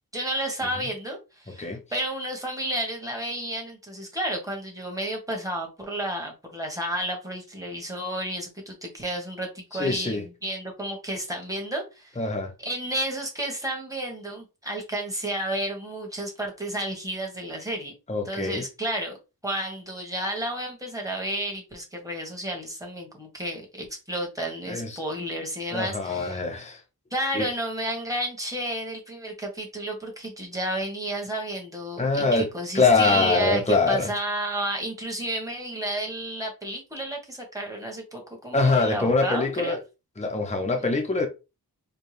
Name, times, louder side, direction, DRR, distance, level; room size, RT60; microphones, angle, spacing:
voice 1, 0.1-12.2 12.6-17.9 18.2-19.2 19.4-26.4 27.1-33.6 33.9-39.8, right 1 dB, 10° right, 1.5 m, -31 dB
voice 2, 9.7-10.2 12.2-12.5 18.1-18.6 24.7-25.0 25.7-26.8 27.3-27.5 32.0-32.5 32.7-34.1 38.5-39.8 40.2-41.3, left 3 dB, 20° left, 0.7 m, -24 dB
4.4 x 2.3 x 3.3 m
wide cardioid pair, 95°, 39 cm